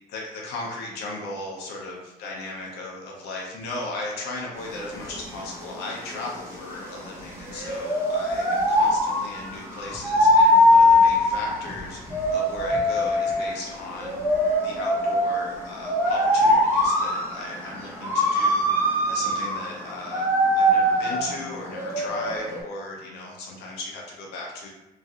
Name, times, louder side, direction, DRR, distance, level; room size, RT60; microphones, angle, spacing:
voice 1, 0.1-14.2 14.6-18.7 19.1-20.3 20.5-24.7, left 2 dB, 80° left, -2 dB, 0.8 m, -36 dB
sound 1, 4.6-22.6, left 1 dB, 15° right, 0.8 m, -22 dB
3.2 x 2.6 x 2.4 m, 0.96 s
cardioid pair, 110°, 17 cm